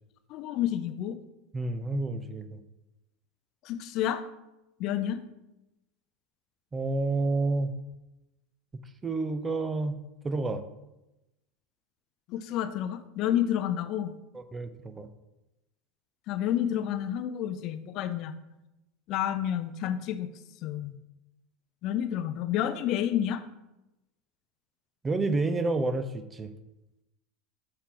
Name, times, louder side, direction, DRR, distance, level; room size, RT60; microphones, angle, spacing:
voice 1, 0.3-1.1 3.6-4.2 4.8-5.2 12.3-14.1 16.3-18.3 19.1-20.3 20.6-21.0 21.8-23.4, left 10 dB, 55° left, 11 dB, 0.5 m, -29 dB
voice 2, 1.5-2.6 6.7-7.7 9.0-10.0 10.2-10.6 14.3-15.1 25.0-26.5, right 3 dB, 20° right, 11 dB, 0.5 m, -29 dB
6.6 x 4.3 x 3.8 m, 0.96 s
hypercardioid pair, 95°, 0 cm